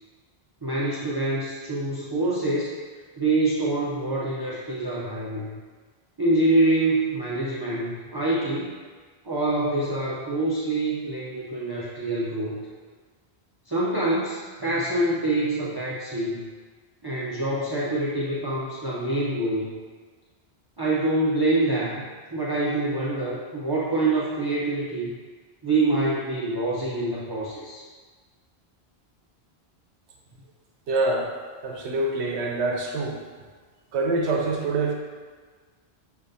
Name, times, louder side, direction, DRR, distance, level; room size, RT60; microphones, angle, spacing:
voice 1, 0.6-2.7 3.2-5.6 6.2-8.8 9.2-12.6 13.7-16.5 17.0-19.7 20.8-22.0 22.3-25.1 25.6-27.8, right 2 dB, 30° right, -7 dB, 0.4 m, -25 dB
voice 2, 30.9-31.3 31.6-33.2 33.9-34.9, right 2 dB, 90° right, 0 dB, 1.0 m, -25 dB
6.7 x 2.7 x 2.6 m, 1.5 s
omnidirectional pair, 1.1 m